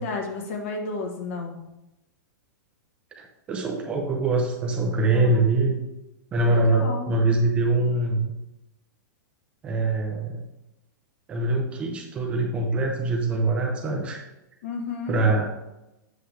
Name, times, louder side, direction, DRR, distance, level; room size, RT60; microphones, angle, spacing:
voice 1, 0.0-1.6 5.1-5.5 6.4-7.1 14.6-15.2, left 4 dB, 40° left, 3 dB, 1.2 m, -32 dB
voice 2, 3.2-5.8 6.3-8.3 9.6-10.4 11.3-14.2 15.1-15.4, right 2 dB, 10° right, 2 dB, 0.5 m, -23 dB
7.8 x 6.8 x 3.3 m, 0.95 s
supercardioid pair, 180°, 11 cm